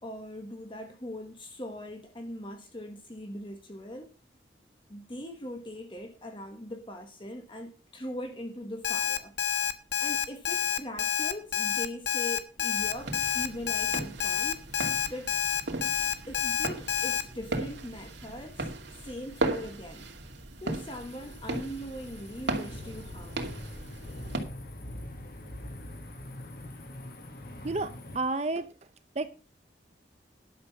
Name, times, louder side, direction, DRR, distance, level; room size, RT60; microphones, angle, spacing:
voice 1, 0.0-4.1 4.9-9.3 10.0-14.6 15.1-15.3 16.3-20.1 20.6-23.5, equal, 30° left, 1.3 m, -41 dB
Alarm, 8.8-17.2, left 8 dB, 90° left, 1.2 m, -28 dB
sound 1, 12.8-24.4, right 2 dB, 85° right, 2.3 m, -37 dB
sound 2, 20.8-28.2, left 1 dB, 55° left, 1.9 m, -44 dB
voice 2, 28.1-28.7 29.2-29.3, right 3 dB, 40° right, 0.6 m, -29 dB
11.0 x 6.9 x 5.7 m
head